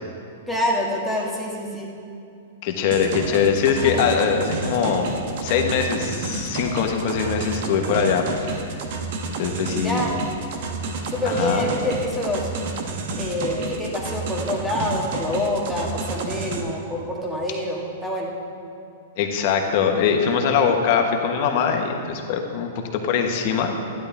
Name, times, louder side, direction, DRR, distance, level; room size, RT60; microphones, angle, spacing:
voice 1, 0.5-1.9 3.8-4.0 9.7-10.1 11.1-12.5 13.2-18.3, left 1 dB, ahead, -4 dB, 1.8 m, -26 dB
voice 2, 2.6-5.1 5.4-8.7 9.4-10.0 11.2-11.7 19.2-23.8, left 6 dB, 50° left, 3 dB, 1.3 m, -22 dB
sound 1, 2.9-16.6, right 3 dB, 60° right, 1.2 m, -30 dB
12.0 x 10.5 x 3.5 m, 2.5 s
hypercardioid pair, 135°, 0 cm